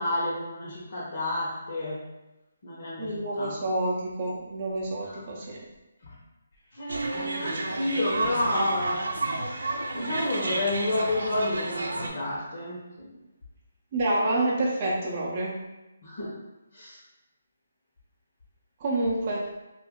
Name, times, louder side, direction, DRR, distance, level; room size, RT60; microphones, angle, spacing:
voice 1, 0.0-2.0 2.6-3.6 5.0-5.2 6.0-6.2 6.7-9.0 9.4-13.1 16.0-16.4 16.7-17.0, left 1 dB, 50° left, -8 dB, 0.9 m, -30 dB
voice 2, 3.0-5.6 13.9-15.5 18.8-19.4, right 1 dB, 30° right, -5 dB, 0.5 m, -28 dB
sound 1, 6.9-12.1, right 2 dB, 75° right, 0.6 m, -31 dB
2.7 x 2.5 x 3.6 m, 1.0 s
hypercardioid pair, 165°, 0 cm